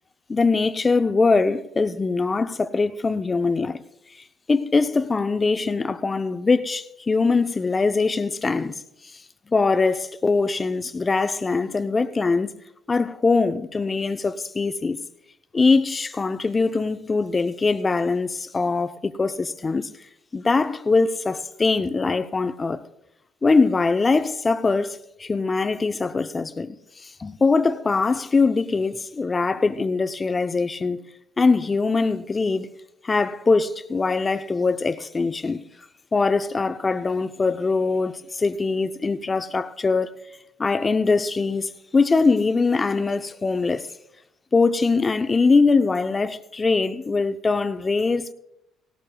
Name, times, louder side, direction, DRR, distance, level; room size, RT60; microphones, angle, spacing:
voice 1, 0.3-3.8 4.5-8.8 9.5-12.5 12.9-15.0 15.5-19.9 20.3-22.8 23.4-31.0 31.4-32.7 33.0-35.6 36.1-40.2 40.6-43.9 44.5-48.3, left 4 dB, 30° left, 0.7 m, -22 dB
18.0 x 17.5 x 2.3 m
hypercardioid pair, 60°, 0 cm